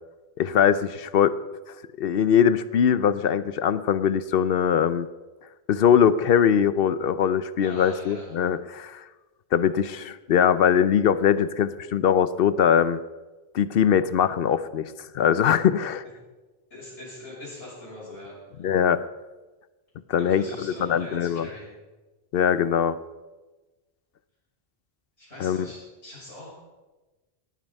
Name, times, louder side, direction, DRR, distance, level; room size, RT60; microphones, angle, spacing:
voice 1, 0.4-1.4 2.0-5.1 5.7-9.0 9.5-13.0 13.5-16.0 18.6-19.0 20.1-21.5 22.3-23.0 25.4-25.7, left 8 dB, 65° left, 15 dB, 0.8 m, -21 dB
voice 2, 7.6-8.3 16.7-18.7 20.1-21.7 25.2-26.6, left 1 dB, 85° left, -8 dB, 6.4 m, -42 dB
18.0 x 9.0 x 5.3 m, 1.2 s
omnidirectional pair, 1.1 m